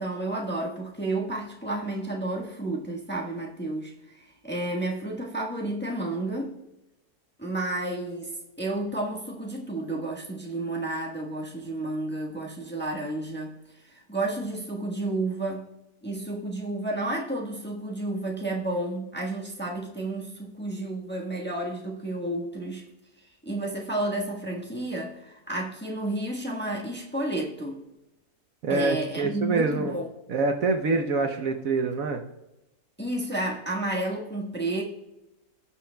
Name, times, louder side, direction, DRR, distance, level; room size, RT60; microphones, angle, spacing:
voice 1, 0.0-6.5 7.4-13.6 13.8-15.7 16.0-22.8 23.4-27.8 28.7-30.1 33.0-34.8, right 2 dB, 5° left, -2 dB, 1.1 m, -31 dB
voice 2, 28.6-30.0 30.3-32.2, right 3 dB, 65° right, 5 dB, 1.1 m, -25 dB
18.5 x 6.3 x 2.2 m, 0.94 s
omnidirectional pair, 1.7 m